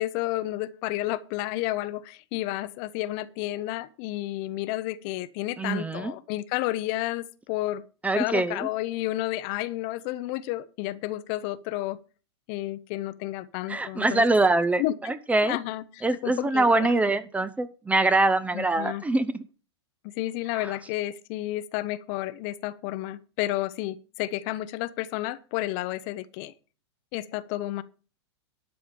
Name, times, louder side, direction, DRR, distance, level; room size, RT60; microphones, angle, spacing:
voice 1, 0.0-7.8 8.2-12.0 12.5-14.2 14.8-15.1 15.4-16.9 18.5-19.0 20.2-26.5 27.1-27.8, left 16 dB, 45° left, 0.8 m, -31 dB
voice 2, 5.6-6.1 8.0-8.7 13.7-15.6 16.0-19.4 20.6-20.7, right 2 dB, 10° right, 0.7 m, -24 dB
12.5 x 5.0 x 7.2 m
hypercardioid pair, 110°, 15 cm